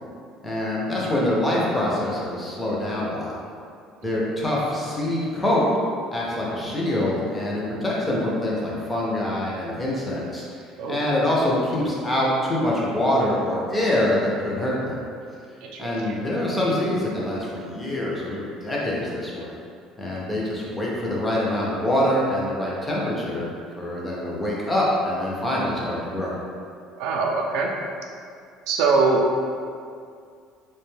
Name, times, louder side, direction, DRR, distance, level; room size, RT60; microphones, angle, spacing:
voice 1, 0.4-3.4 4.0-5.7 6.1-10.4 10.9-15.0 15.8-19.5 20.0-26.3, left 1 dB, 10° left, -5 dB, 0.4 m, -25 dB
voice 2, 15.6-16.2 27.0-27.7 28.7-29.5, right 3 dB, 70° right, 0 dB, 0.3 m, -23 dB
2.5 x 2.1 x 3.1 m, 2.3 s
cardioid pair, 180°, 0 cm